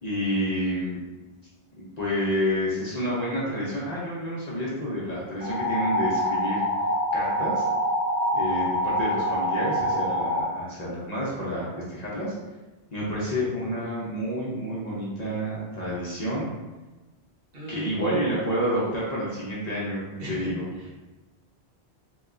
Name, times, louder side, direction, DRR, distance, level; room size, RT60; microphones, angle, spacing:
voice 1, 0.0-1.0 1.8-6.9 7.1-7.6 8.3-12.3 12.9-16.5 17.7-20.6, equal, 45° left, -7 dB, 0.7 m, -29 dB
sound 1, 5.4-10.4, equal, 85° left, 1.0 m, -25 dB
voice 2, 17.5-18.3 20.2-20.5 20.8-20.9, right 2 dB, 60° right, -6 dB, 1.1 m, -32 dB
3.2 x 2.9 x 2.4 m, 1.2 s
omnidirectional pair, 1.1 m